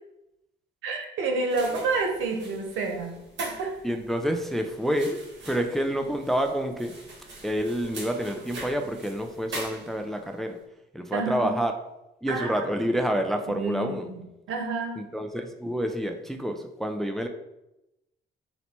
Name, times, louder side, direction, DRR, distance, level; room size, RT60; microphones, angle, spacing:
voice 1, 0.8-3.7 11.1-11.6 12.3-12.5 13.5-14.2 14.5-15.0, right 3 dB, 85° right, 2 dB, 0.8 m, -29 dB
sound 1, 1.5-10.3, right 2 dB, 65° right, 1.4 m, -43 dB
voice 2, 3.8-7.0 7.4-10.6 10.9-11.7 12.2-14.1 15.0-17.3, equal, ahead, 5 dB, 0.4 m, -28 dB
4.3 x 2.1 x 4.2 m, 0.91 s
cardioid pair, 90°, 20 cm